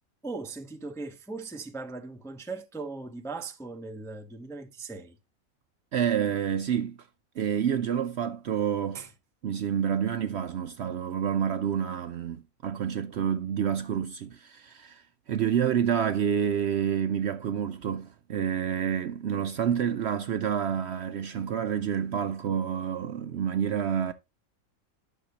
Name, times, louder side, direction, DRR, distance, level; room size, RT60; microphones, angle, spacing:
voice 1, 0.2-5.2 8.9-9.1, right 3 dB, 5° left, 0.5 m, -39 dB
voice 2, 5.9-7.0 7.4-9.0 9.4-24.1, right 8 dB, 60° right, 0.7 m, -28 dB
11.0 x 6.4 x 2.8 m
omnidirectional pair, 1.5 m